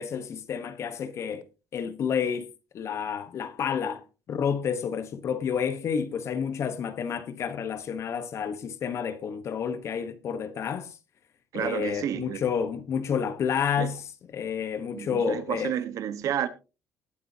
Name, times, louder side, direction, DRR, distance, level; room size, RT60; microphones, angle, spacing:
voice 1, 0.0-1.4 1.7-2.5 2.7-10.9 11.5-14.0 14.3-15.7, left 7 dB, 50° left, 1.1 m, -30 dB
voice 2, 11.5-12.4 13.8-13.9 14.9-16.5, right 10 dB, 65° right, 1.2 m, -30 dB
19.5 x 8.5 x 2.8 m
cardioid pair, 135°, 6 cm